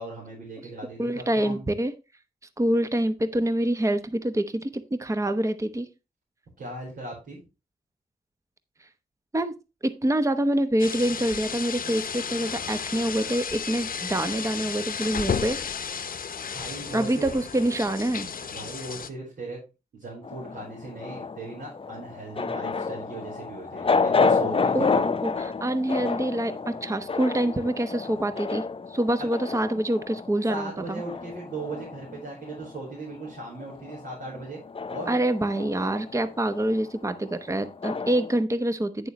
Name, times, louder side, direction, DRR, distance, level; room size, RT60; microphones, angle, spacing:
voice 1, 0.0-1.6 6.6-7.4 16.5-17.3 18.5-19.6 19.9-25.1 29.2-29.3 30.5-34.6 34.9-35.1, right 2 dB, 75° right, -4 dB, 4.6 m, -38 dB
voice 2, 1.0-1.9 2.6-5.9 9.3-9.5 9.8-15.6 16.9-18.3 24.7-24.9 25.2-28.6 28.9-31.0 35.1-39.1, right 1 dB, 20° right, 10 dB, 0.9 m, -26 dB
sound 1, 10.8-19.1, left 6 dB, 65° left, 0.8 m, -33 dB
sound 2, 20.2-32.9 33.2-38.4, left 4 dB, 35° left, 0.7 m, -30 dB
9.4 x 6.9 x 3.1 m, 0.28 s
cardioid pair, 60°, 16 cm